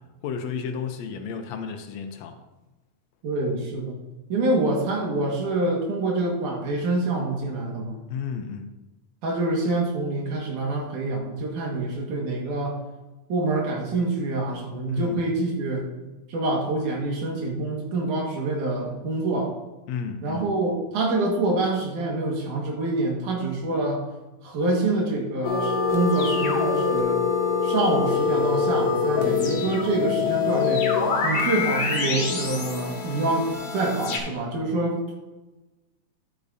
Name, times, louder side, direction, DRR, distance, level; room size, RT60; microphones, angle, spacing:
voice 1, 0.2-2.4 8.1-8.7 14.9-15.2 19.9-20.5, left 6 dB, 70° left, 6 dB, 1.8 m, -32 dB
voice 2, 3.2-4.0 4.3-8.0 9.2-12.8 13.3-15.9 16.3-19.5 20.2-24.0 24.4-27.2 27.6-30.9 31.2-35.1, right 2 dB, 85° right, -1 dB, 3.2 m, -26 dB
The Pacman Variations, 25.4-34.2, left 5 dB, 55° left, 2.4 m, -24 dB
11.5 x 8.2 x 2.7 m, 1.1 s
omnidirectional pair, 3.4 m